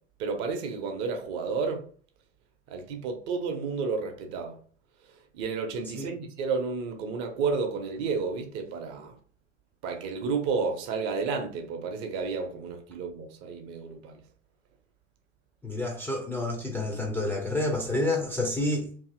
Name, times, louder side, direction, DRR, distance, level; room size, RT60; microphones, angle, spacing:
voice 1, 0.2-1.8 2.7-4.6 5.3-9.1 9.8-14.2, right 4 dB, 40° right, 0.6 m, -31 dB
voice 2, 15.6-18.9, left 2 dB, 5° left, 0.4 m, -29 dB
2.7 x 2.6 x 2.5 m
figure-of-eight pair, 75°, 37 cm